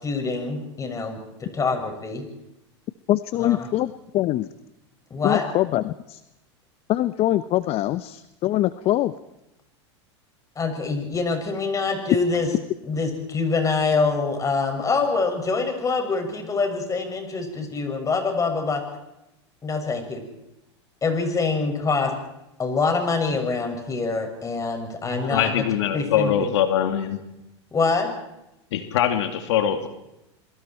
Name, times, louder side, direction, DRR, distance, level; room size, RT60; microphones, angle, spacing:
voice 1, 0.0-2.3 3.4-3.7 5.1-5.5 10.6-12.5 12.8-18.8 19.6-20.2 21.0-22.1 22.6-25.7 25.9-26.5 27.7-28.2, left 4 dB, 20° left, 4 dB, 6.4 m, -25 dB
voice 2, 3.1-4.5 5.2-6.2 6.9-9.1, left 14 dB, 40° left, 14 dB, 0.9 m, -23 dB
voice 3, 25.1-27.2 28.7-29.9, left 9 dB, 75° left, 7 dB, 2.4 m, -23 dB
27.5 x 23.0 x 4.5 m, 0.90 s
hypercardioid pair, 105°, 15 cm